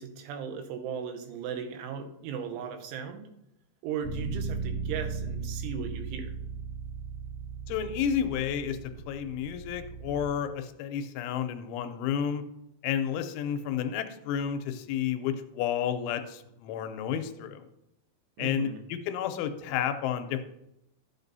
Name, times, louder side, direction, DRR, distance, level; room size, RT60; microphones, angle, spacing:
voice 1, 0.0-3.3 3.8-6.4 18.4-18.8, right 7 dB, 85° right, 5 dB, 3.3 m, -37 dB
Bass guitar, 4.0-10.3, right 5 dB, 50° right, 3.2 m, -37 dB
voice 2, 7.7-12.4 12.8-17.7 18.4-20.4, left 9 dB, 85° left, 9 dB, 3.0 m, -31 dB
12.5 x 7.9 x 2.7 m, 0.84 s
omnidirectional pair, 5.4 m